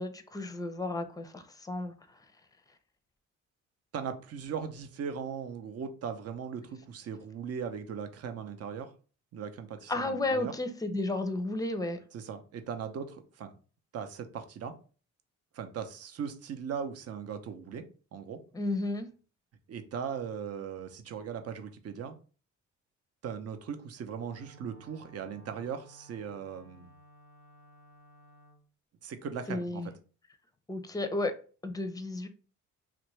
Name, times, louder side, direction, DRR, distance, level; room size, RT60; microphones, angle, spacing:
voice 1, 0.0-1.9 9.9-12.0 18.5-19.1 29.5-29.9 30.7-31.3 31.6-32.3, left 2 dB, 10° left, 0.5 m, -33 dB
voice 2, 3.9-8.9 9.3-10.5 12.1-13.5 13.9-14.8 15.5-17.8 18.1-18.4 19.7-22.2 23.2-26.9 29.0-29.9, right 7 dB, 55° right, 0.7 m, -38 dB
Wind instrument woodwind instrument, 24.1-28.6, right 1 dB, 90° right, 0.9 m, -57 dB
3.3 x 2.5 x 3.1 m
cardioid pair, 90°, 30 cm